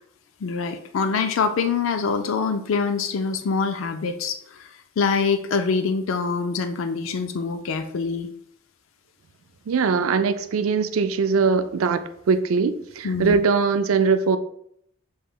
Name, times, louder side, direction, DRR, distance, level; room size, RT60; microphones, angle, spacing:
voice 1, 0.4-4.7 5.0-8.3 13.0-13.4, left 5 dB, 75° left, 0.4 m, -25 dB
voice 2, 9.7-14.4, right 5 dB, 90° right, 0.4 m, -21 dB
7.2 x 3.1 x 2.3 m
head